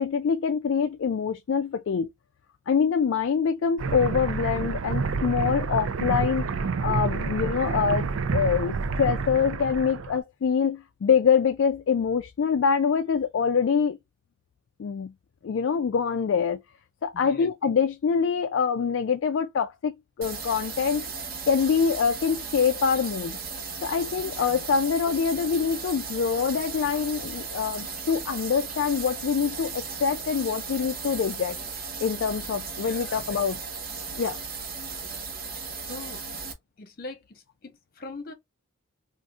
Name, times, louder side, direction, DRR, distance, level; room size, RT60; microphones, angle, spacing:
voice 1, 0.0-2.1 2.7-14.0 14.8-15.1 15.4-16.6 17.0-19.9 20.2-21.1 21.5-23.4 23.8-31.6 32.0-33.6 34.2-34.4, left 6 dB, 65° left, 0.3 m, -25 dB
sound 1, 3.8-10.2, right 5 dB, 75° right, 0.4 m, -28 dB
voice 2, 17.1-17.5 24.5-24.6 32.8-33.4 35.9-36.2 36.8-38.3, left 2 dB, 45° left, 1.0 m, -42 dB
sound 2, 20.2-36.5, right 5 dB, 45° right, 1.1 m, -36 dB
3.7 x 2.5 x 2.4 m
head